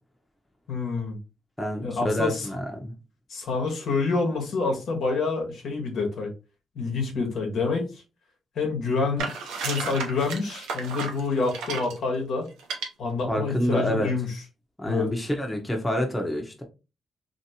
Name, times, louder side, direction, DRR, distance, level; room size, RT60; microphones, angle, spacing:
voice 1, 0.7-1.2 1.8-2.5 3.3-6.3 6.7-8.0 8.5-9.3 9.6-12.5 13.0-14.4 14.8-15.1, left 4 dB, 75° left, 1.2 m, -27 dB
voice 2, 1.6-2.9 13.3-14.1 14.8-16.6, equal, 15° left, 1.0 m, -27 dB
sound 1, 9.2-12.0 12.6-12.9, right 5 dB, 85° right, 0.7 m, -33 dB
3.0 x 2.9 x 2.8 m
supercardioid pair, 55°, 0 cm